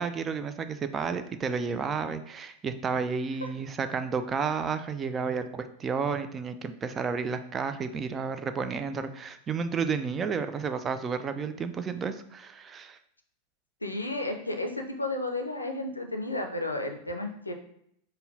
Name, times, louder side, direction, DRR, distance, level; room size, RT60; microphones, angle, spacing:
voice 1, 0.0-13.0, right 5 dB, 25° right, 10 dB, 0.3 m, -31 dB
voice 2, 13.8-17.5, left 2 dB, 85° left, 4 dB, 0.4 m, -32 dB
5.3 x 2.1 x 2.7 m, 0.71 s
figure-of-eight pair, 90°, 0 cm